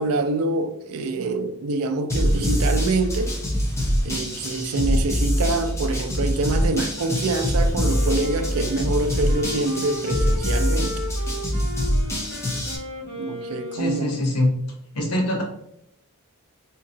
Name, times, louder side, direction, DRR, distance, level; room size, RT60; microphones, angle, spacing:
voice 1, 0.0-3.4 4.0-10.9 13.1-14.1, right 2 dB, 70° right, 0.4 m, -25 dB
sound 1, 2.1-12.8, equal, 15° left, 0.6 m, -24 dB
Wind instrument woodwind instrument, 7.7-14.4, left 2 dB, 45° left, 1.0 m, -35 dB
voice 2, 13.7-14.5 14.9-15.4, left 1 dB, 85° left, 1.0 m, -23 dB
3.4 x 2.9 x 2.7 m
head